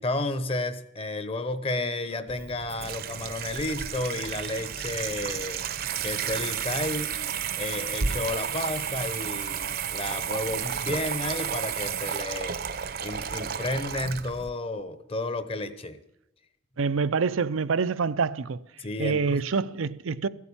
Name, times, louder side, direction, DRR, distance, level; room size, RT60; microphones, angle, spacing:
voice 1, 0.0-5.6 6.0-7.2 7.6-12.6 13.0-16.0 18.8-19.4, left 2 dB, 30° left, 0.9 m, -32 dB
Water tap faucet / Sink (filling or washing), 2.3-14.5, right 7 dB, 50° right, 0.7 m, -32 dB
voice 2, 16.8-18.6 19.0-20.3, right 5 dB, 85° right, 0.6 m, -26 dB
14.5 x 8.4 x 8.8 m
head